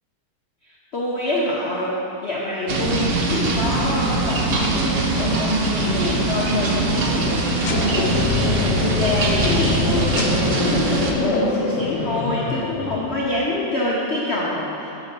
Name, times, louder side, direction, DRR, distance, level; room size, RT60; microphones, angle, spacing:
voice 1, 0.9-14.9, left 2 dB, 50° left, -6 dB, 0.8 m, -25 dB
sound 1, 2.7-11.1, right 3 dB, 65° right, 0.5 m, -22 dB
sound 2, 7.6-13.6, left 5 dB, 80° left, 1.2 m, -26 dB
7.3 x 4.0 x 6.7 m, 3.0 s
omnidirectional pair, 1.9 m